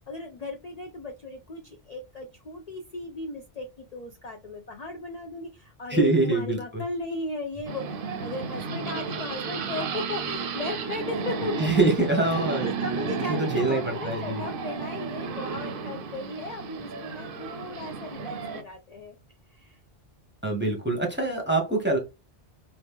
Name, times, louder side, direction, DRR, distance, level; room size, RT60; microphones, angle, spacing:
voice 1, 0.0-7.8 8.2-11.8 12.4-19.1 19.5-19.8, left 2 dB, 45° left, 2 dB, 0.6 m, -36 dB
voice 2, 5.9-6.8 11.6-12.7 13.3-14.4 20.4-22.0, right 2 dB, 10° right, 1 dB, 1.0 m, -24 dB
sound 1, 7.7-18.6, right 5 dB, 60° right, 0.7 m, -33 dB
3.0 x 2.5 x 3.4 m, 0.25 s
omnidirectional pair, 1.1 m